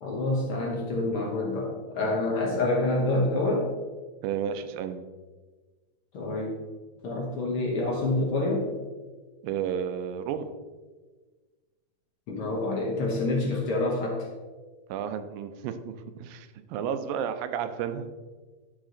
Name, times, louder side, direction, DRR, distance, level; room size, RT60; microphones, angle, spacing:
voice 1, 0.0-3.7 6.1-6.6 7.0-8.7 12.3-14.3, left 2 dB, 65° left, -2 dB, 1.3 m, -27 dB
voice 2, 4.2-5.0 9.4-10.5 14.9-18.1, right 8 dB, 85° right, 9 dB, 2.4 m, -32 dB
10.5 x 4.9 x 3.8 m, 1.3 s
omnidirectional pair, 4.0 m